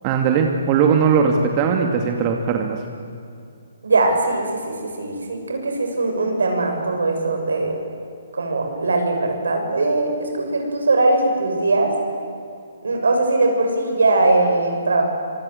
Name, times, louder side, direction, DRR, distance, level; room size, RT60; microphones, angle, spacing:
voice 1, 0.0-2.8, right 6 dB, 35° right, 3 dB, 2.5 m, -19 dB
voice 2, 3.8-7.8 8.3-11.9 12.8-15.0, right 2 dB, 75° right, 3 dB, 7.0 m, -20 dB
26.0 x 24.5 x 8.1 m, 2.4 s
figure-of-eight pair, 135°, 0 cm